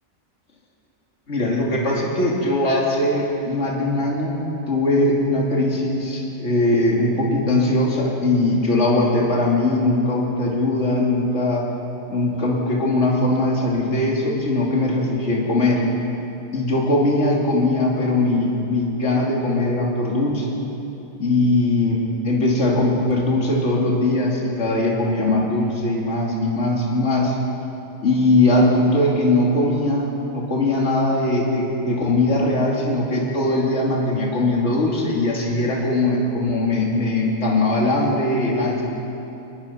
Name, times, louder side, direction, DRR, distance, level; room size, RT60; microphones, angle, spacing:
voice 1, 1.3-11.7 12.1-15.8 16.5-20.5 21.2-27.4 28.0-38.8, left 2 dB, 55° left, -3 dB, 3.0 m, -20 dB
22.5 x 20.5 x 5.7 m, 2.9 s
omnidirectional pair, 1.5 m